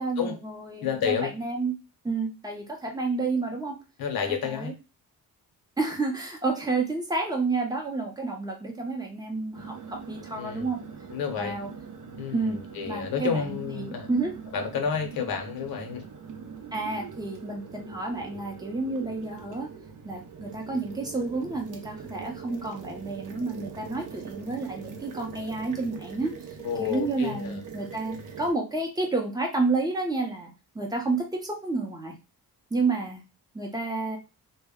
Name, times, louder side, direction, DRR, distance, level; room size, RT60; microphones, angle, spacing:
voice 1, 0.0-1.7 2.0-3.7 4.2-4.7 5.8-10.8 11.3-11.7 12.3-12.6 12.9-14.3 16.7-19.7 20.0-26.3 26.8-32.2 32.7-33.2 33.5-34.2, right 3 dB, 10° right, 1 dB, 0.6 m, -30 dB
voice 2, 0.8-1.3 4.0-4.7 10.3-10.7 11.1-11.6 12.2-14.1 14.5-16.1 26.6-27.6, left 7 dB, 70° left, 4 dB, 0.8 m, -30 dB
sound 1, 9.5-28.5, right 6 dB, 55° right, 0.6 m, -43 dB
2.1 x 2.1 x 3.5 m, 0.29 s
cardioid pair, 145°, 37 cm